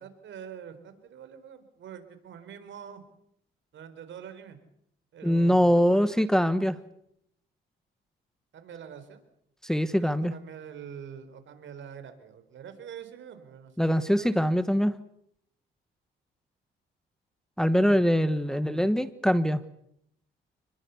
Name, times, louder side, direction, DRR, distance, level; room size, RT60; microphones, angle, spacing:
voice 1, 0.0-3.1 3.7-4.6 5.1-6.5 8.5-9.2 10.2-14.3 17.7-18.0 18.4-18.9, right 8 dB, 70° right, 10 dB, 4.3 m, -45 dB
voice 2, 5.2-6.8 9.6-10.3 13.8-14.9 17.6-19.6, equal, 5° left, 12 dB, 1.3 m, -23 dB
28.5 x 21.5 x 7.1 m, 0.74 s
cardioid pair, 90°, 20 cm